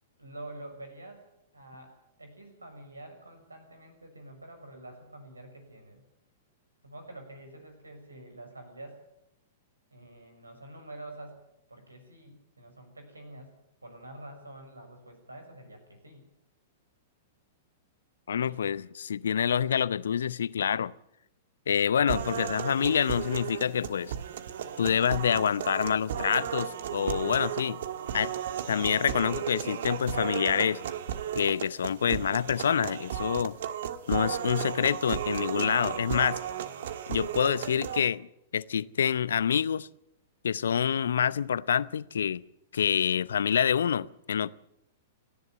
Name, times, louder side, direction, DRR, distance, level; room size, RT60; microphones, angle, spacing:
voice 1, 0.2-1.3 1.5-1.9 2.2-6.0 6.8-9.0 9.9-11.4 11.7-13.5 13.8-16.3 18.5-18.7, right 1 dB, 85° right, 6.1 m, -47 dB
voice 2, 18.3-20.9 21.7-24.1 24.8-27.8 28.1-28.3 28.7-30.8 31.3-33.6 34.1-36.4 37.1-38.3 38.5-39.9 40.4-42.4 42.7-44.5, left 8 dB, 70° left, 0.7 m, -27 dB
sound 1, 22.1-38.1, right 9 dB, 60° right, 1.5 m, -34 dB
29.5 x 11.0 x 9.0 m
figure-of-eight pair, 105°, 0 cm